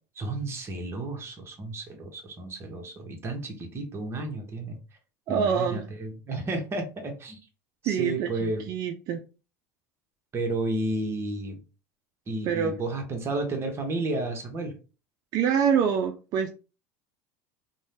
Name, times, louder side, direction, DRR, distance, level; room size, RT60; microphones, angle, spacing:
voice 1, 0.2-4.8 5.3-7.4 7.8-8.7 10.3-11.6 12.3-14.8, right 2 dB, 30° right, 0.9 m, -32 dB
voice 2, 5.3-5.9 7.8-9.2 12.4-12.8 15.3-16.5, right 7 dB, 45° right, 0.4 m, -26 dB
2.6 x 2.1 x 3.2 m
hypercardioid pair, 95°, 9 cm